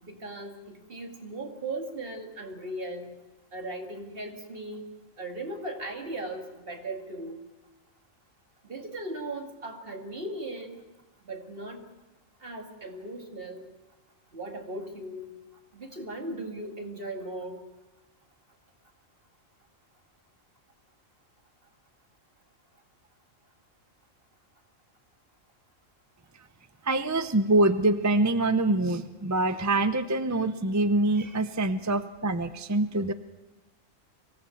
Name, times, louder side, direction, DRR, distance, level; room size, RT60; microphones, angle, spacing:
voice 1, 0.0-3.1 3.5-4.9 5.2-7.4 8.6-10.8 11.2-11.8 12.4-13.7 14.3-15.3 15.7-17.7 31.2-31.4, right 2 dB, 45° right, 3 dB, 2.4 m, -38 dB
voice 2, 26.8-33.1, right 2 dB, 20° right, 11 dB, 0.5 m, -25 dB
24.0 x 17.0 x 7.8 m, 1.1 s
omnidirectional pair, 1.3 m